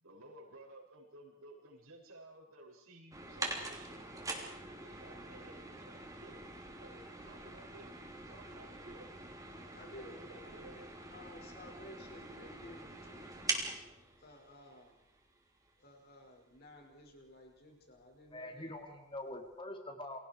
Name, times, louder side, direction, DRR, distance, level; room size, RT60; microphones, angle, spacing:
voice 1, 0.0-4.0 4.7-6.5 6.8-7.9 8.3-9.1 9.9-10.9, right 1 dB, 80° right, -1 dB, 6.8 m, -55 dB
sound 1, 3.1-15.3 15.6-15.7 16.6-16.7 16.9-17.0 17.6-17.7 18.0-18.1, right 2 dB, 15° right, 3.3 m, -44 dB
voice 2, 9.7-13.3 14.2-15.0 15.8-18.7, left 1 dB, 50° left, 2 dB, 6.0 m, -55 dB
voice 3, 18.3-20.2, left 1 dB, 25° left, 4 dB, 2.9 m, -44 dB
29.5 x 22.5 x 4.8 m, 0.77 s
head